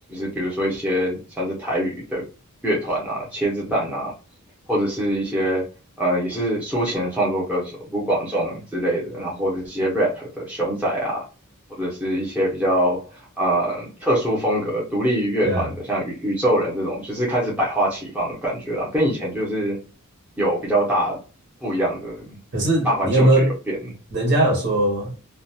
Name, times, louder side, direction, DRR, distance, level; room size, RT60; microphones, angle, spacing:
voice 1, 0.1-2.2 2.6-4.1 4.7-5.7 6.0-11.2 11.7-13.0 13.4-19.8 20.4-21.2 21.6-22.2 22.8-23.9, right 1 dB, 5° right, 0.8 m, -24 dB
voice 2, 22.5-23.5 24.1-25.1, right 1 dB, 50° right, 1.0 m, -19 dB
2.5 x 2.2 x 2.7 m
head